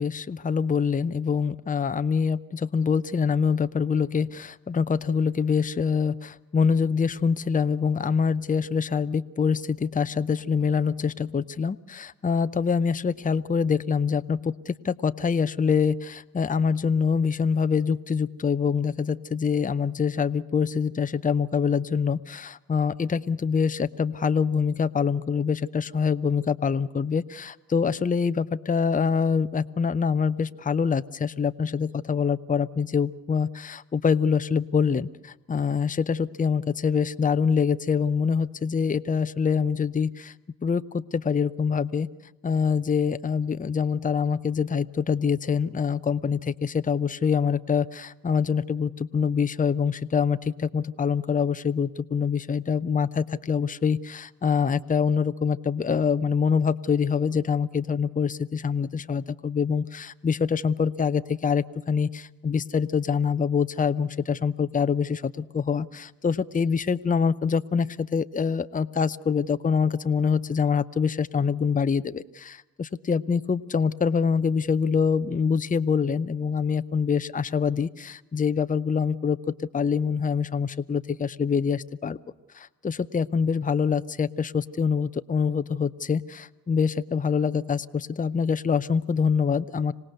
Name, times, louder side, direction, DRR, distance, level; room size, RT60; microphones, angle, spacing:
voice 1, 0.0-40.3 40.6-42.1 42.4-82.2 82.5-89.9, left 6 dB, 20° left, 13 dB, 0.7 m, -25 dB
26.0 x 18.0 x 8.0 m, 0.99 s
hypercardioid pair, 45°, 41 cm